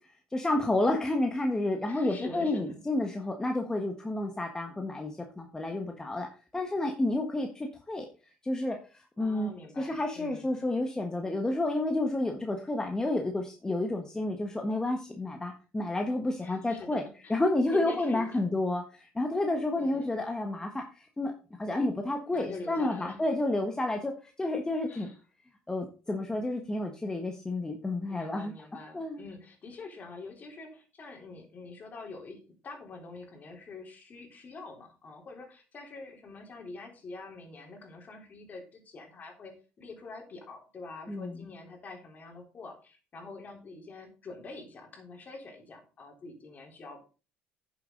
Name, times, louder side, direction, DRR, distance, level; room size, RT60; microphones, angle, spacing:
voice 1, 0.3-6.3 6.5-8.1 8.4-8.8 9.2-9.5 9.8-17.0 17.3-21.3 21.6-24.1 24.4-25.1 25.7-28.5 28.9-29.2 41.1-41.4, left 2 dB, 15° left, 3 dB, 1.4 m, -30 dB
voice 2, 1.8-2.8 9.2-10.7 16.4-17.4 17.7-18.4 19.8-20.1 22.3-23.2 24.9-25.2 28.1-47.0, left 3 dB, 40° left, 2 dB, 3.8 m, -45 dB
9.9 x 7.3 x 3.9 m, 0.34 s
supercardioid pair, 90°, 4 cm